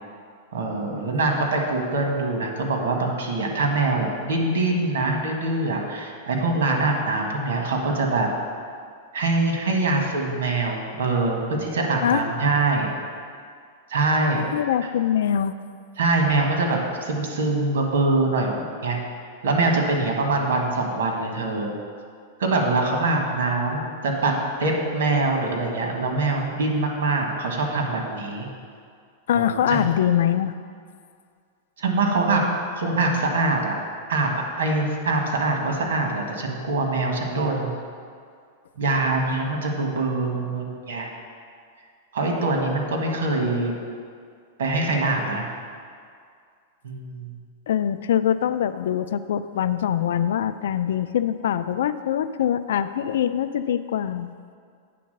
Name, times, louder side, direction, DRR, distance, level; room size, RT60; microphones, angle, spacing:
voice 1, 0.5-8.3 9.1-12.9 13.9-14.5 16.0-18.5 18.8-19.0 19.4-21.7 22.4-24.3 24.6-28.5 29.3-29.8 31.8-32.4 32.8-33.8 34.1-37.7 38.8-41.1 42.1-43.8 44.6-45.4 46.8-47.3, right 2 dB, 85° right, 1 dB, 1.5 m, -24 dB
voice 2, 14.5-15.5 29.3-30.5 47.7-54.3, left 10 dB, 80° left, 12 dB, 0.3 m, -23 dB
8.4 x 3.9 x 6.6 m, 2.2 s
supercardioid pair, 150°, 0 cm